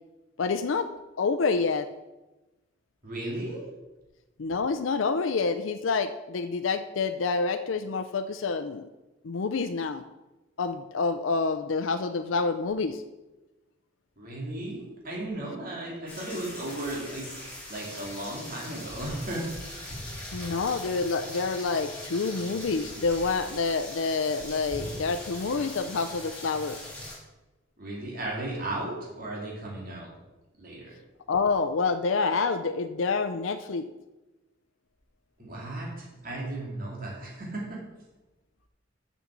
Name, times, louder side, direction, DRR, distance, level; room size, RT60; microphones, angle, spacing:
voice 1, 0.4-0.9 1.2-1.9 4.4-8.9 9.2-10.0 10.6-13.0 20.3-26.8 31.3-33.9, left 4 dB, 90° left, 10 dB, 0.5 m, -27 dB
voice 2, 3.0-3.6 14.2-17.3 17.7-20.0 27.8-30.1 30.6-31.0 35.4-37.8, right 1 dB, 50° right, -3 dB, 2.5 m, -35 dB
sound 1, 16.1-27.1, left 1 dB, 5° left, 3.3 m, -41 dB
6.7 x 6.4 x 7.3 m, 1.1 s
head